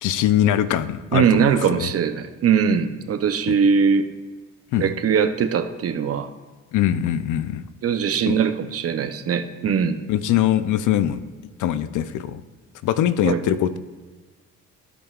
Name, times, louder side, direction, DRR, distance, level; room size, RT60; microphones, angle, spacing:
voice 1, 0.0-1.9 3.5-3.6 4.7-4.9 6.7-7.6 8.3-8.4 10.1-11.2 11.6-12.4 12.8-13.8, left 11 dB, 80° left, 13 dB, 0.5 m, -22 dB
voice 2, 1.1-4.0 4.8-6.3 7.8-10.0 13.2-13.4, right 7 dB, 50° right, 9 dB, 0.7 m, -21 dB
15.0 x 5.2 x 2.4 m, 1.3 s
cardioid pair, 90°, 30 cm